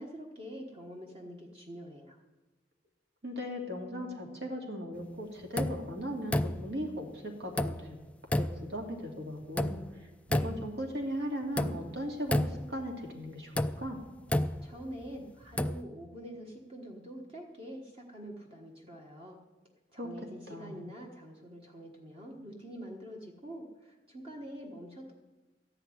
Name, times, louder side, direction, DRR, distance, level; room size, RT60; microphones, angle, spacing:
voice 1, 0.0-2.2 14.6-19.4 19.9-25.1, equal, 35° right, 0 dB, 1.4 m, -45 dB
voice 2, 3.2-8.0 8.4-14.0 20.0-20.1 20.5-20.8, equal, 65° right, 1 dB, 2.5 m, -38 dB
sound 1, 5.6-5.9 6.3-6.8 7.6-7.9 8.3-8.7 9.6-9.9 10.3-10.8 11.6-11.9 12.3-12.8 13.6-15.1 15.4-15.8, left 1 dB, 5° left, 0.3 m, -31 dB
14.0 x 5.8 x 9.6 m, 1.2 s
head